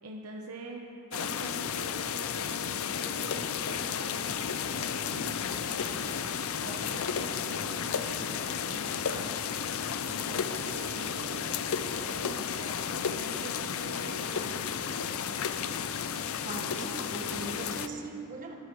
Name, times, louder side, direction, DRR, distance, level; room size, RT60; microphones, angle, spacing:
voice 1, 0.0-0.8 1.1-9.4 10.1-15.1, right 2 dB, 80° right, 0 dB, 1.0 m, -45 dB
sound 1, 1.1-17.9, left 7 dB, 65° left, 0.5 m, -33 dB
voice 2, 16.4-18.5, right 2 dB, 35° right, 1 dB, 1.5 m, -39 dB
22.5 x 13.0 x 3.1 m, 2.8 s
head